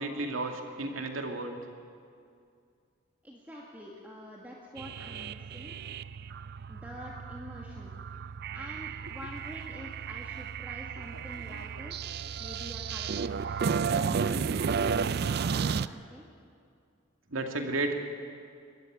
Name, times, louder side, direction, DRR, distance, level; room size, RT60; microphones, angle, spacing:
voice 1, 0.0-1.6 11.1-11.9 13.3-13.4 13.8-13.9 14.3-14.6 17.3-17.9, right 2 dB, 90° right, 3 dB, 2.4 m, -34 dB
voice 2, 3.2-5.8 6.7-7.9 8.5-12.0 12.4-16.3, equal, 10° right, -3 dB, 1.9 m, -46 dB
sound 1, 4.8-15.9, right 6 dB, 50° right, 0.4 m, -33 dB
22.5 x 14.0 x 9.3 m, 2.3 s
head